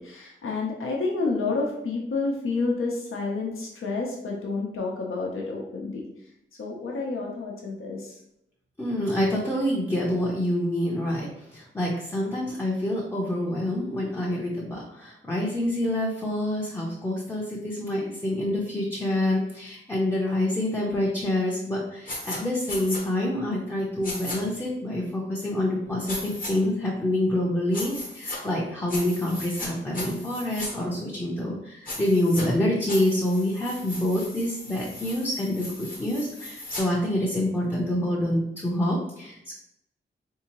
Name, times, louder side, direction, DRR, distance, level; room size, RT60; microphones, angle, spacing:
voice 1, 0.0-6.0 6.6-8.2, left 3 dB, 80° left, -2 dB, 0.7 m, -29 dB
voice 2, 8.8-11.3 11.5-39.5, left 1 dB, 10° left, -5 dB, 0.5 m, -27 dB
sound 1, 22.1-22.4 22.7-23.0 24.0-24.4 26.1-26.5 27.7-28.4 28.9-29.7 29.9-30.7 31.9-32.4 32.9-36.8, left 2 dB, 40° left, 0.9 m, -36 dB
3.6 x 2.7 x 2.9 m, 0.82 s
wide cardioid pair, 145°, 21 cm